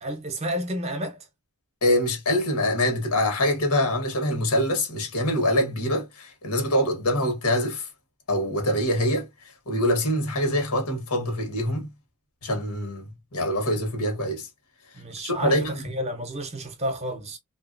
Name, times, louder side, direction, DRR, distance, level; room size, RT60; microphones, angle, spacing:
voice 1, 0.0-1.3 14.9-17.4, equal, 30° right, 0.6 m, -31 dB
voice 2, 1.8-7.9 8.3-9.2 9.7-11.9 12.4-14.5 15.2-15.8, left 1 dB, 90° left, 1.3 m, -24 dB
2.9 x 2.6 x 2.5 m
head